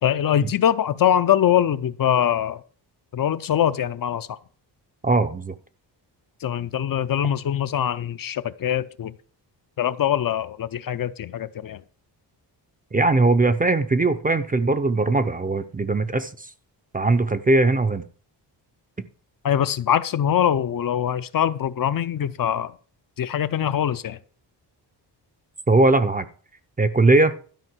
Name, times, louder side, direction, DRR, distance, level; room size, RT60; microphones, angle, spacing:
voice 1, 0.0-2.6 3.1-4.4 6.4-9.1 9.8-11.8 19.4-22.7 23.2-24.2, left 10 dB, 50° left, 0.6 m, -23 dB
voice 2, 5.0-5.5 12.9-16.5 16.9-18.0 25.7-26.3 26.8-27.3, right 2 dB, 20° right, 0.5 m, -20 dB
12.5 x 5.4 x 7.6 m
wide cardioid pair, 170°, 43 cm